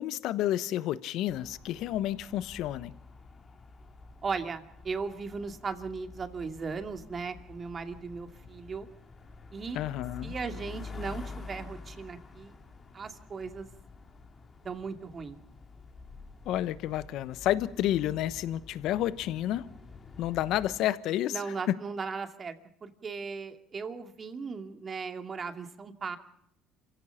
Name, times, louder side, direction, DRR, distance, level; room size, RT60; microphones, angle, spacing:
voice 1, 0.0-2.9 9.7-10.3 16.5-19.7 20.2-21.4 21.7-21.8, left 13 dB, 70° left, 1.0 m, -30 dB
sound 1, 1.3-20.9, left 4 dB, 35° left, 3.0 m, -48 dB
voice 2, 4.2-8.9 9.5-9.8 10.2-12.5 12.9-13.7 14.6-15.4 21.3-26.2, right 5 dB, 35° right, 2.5 m, -37 dB
27.5 x 16.5 x 5.8 m
supercardioid pair, 85°, 0 cm